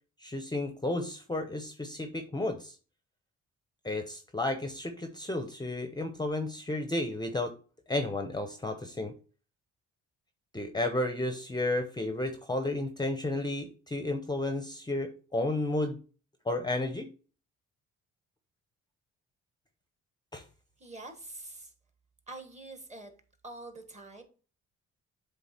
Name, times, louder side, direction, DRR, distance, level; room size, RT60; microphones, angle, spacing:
voice 1, 0.2-2.8 3.8-7.5 7.9-9.1 10.5-16.0 16.5-17.1 20.3-20.4, left 2 dB, 15° left, 7 dB, 0.7 m, -32 dB
voice 2, 20.8-21.7 22.3-23.1 23.4-24.2, right 2 dB, 25° right, 6 dB, 1.5 m, -45 dB
7.7 x 3.4 x 4.3 m, 0.38 s
cardioid pair, 90°, 30 cm